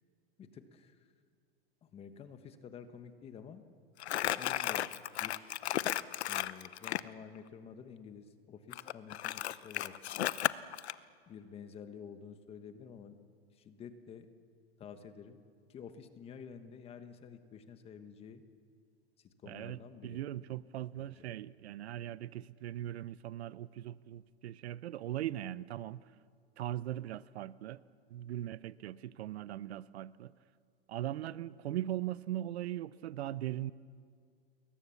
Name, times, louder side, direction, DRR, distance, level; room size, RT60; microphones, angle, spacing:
voice 1, 0.4-1.1 1.8-3.6 4.3-4.9 5.2-5.5 6.3-9.9 11.3-13.2 13.5-14.3 14.8-15.4 15.7-18.4 19.2-20.2 20.9-21.3, left 7 dB, 20° left, 1.3 m, -50 dB
Crumpling crinkling, 4.0-7.1 8.7-10.9, left 12 dB, 90° left, 0.9 m, -34 dB
voice 2, 19.5-26.1 26.6-27.8 28.1-30.3 30.9-33.7, right 13 dB, 80° right, 0.8 m, -40 dB
29.0 x 22.0 x 7.2 m
supercardioid pair, 155°, 32 cm